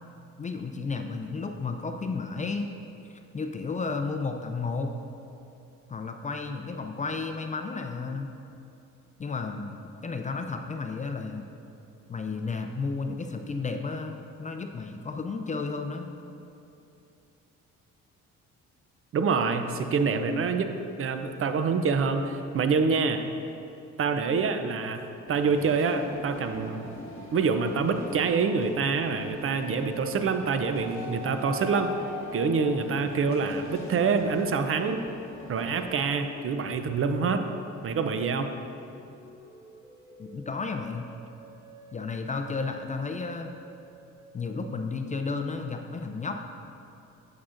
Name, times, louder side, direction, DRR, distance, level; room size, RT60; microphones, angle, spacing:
voice 1, 0.4-2.7 3.3-4.9 5.9-8.3 9.2-9.8 10.0-11.5 12.1-16.1 40.2-41.1 41.9-43.5 44.3-46.4, left 4 dB, 25° left, 5 dB, 0.4 m, -32 dB
voice 2, 19.1-23.2 24.0-25.0 25.3-26.9 27.3-31.9 32.3-35.0 35.5-37.5 37.8-38.5, right 5 dB, 45° right, 7 dB, 0.5 m, -26 dB
sound 1, 25.3-36.0, left 2 dB, 45° left, 1.5 m, -44 dB
sound 2, 26.0-29.6 30.0-38.1 38.8-44.7, left 2 dB, 10° right, 1.0 m, -47 dB
8.5 x 7.1 x 2.5 m, 2.7 s
cardioid pair, 90°, 30 cm